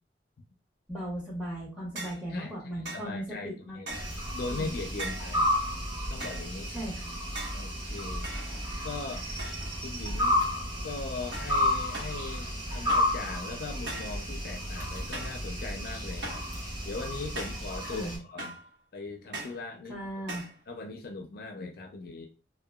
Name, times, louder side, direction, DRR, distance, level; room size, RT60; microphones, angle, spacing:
voice 1, 0.9-4.1 4.5-4.7 6.7-7.1 17.9-18.2 19.9-20.5, right 1 dB, 5° right, -4 dB, 1.0 m, -37 dB
sound 1, 2.0-2.3 2.8-3.1 3.9-4.2 5.0-5.4 6.2-6.5 7.3-7.7 8.2-8.9 9.4-9.8 10.1-10.5 11.3-11.6 11.9-12.2 12.9-13.2 13.9-14.2 15.1-15.4 16.2-16.5 17.4-17.7 18.4-18.7 19.3-19.6 20.3-20.6, right 2 dB, 75° right, 1.0 m, -40 dB
voice 2, 2.3-3.9 4.3-5.5 6.1-6.7 7.5-8.4 8.8-9.3 9.8-10.4 10.8-18.6 18.9-20.1 20.7-22.3, left 3 dB, 55° left, 3 dB, 0.4 m, -40 dB
sound 2, 3.9-18.2, left 1 dB, 25° right, 1.2 m, -32 dB
2.8 x 2.1 x 2.2 m, 0.34 s
head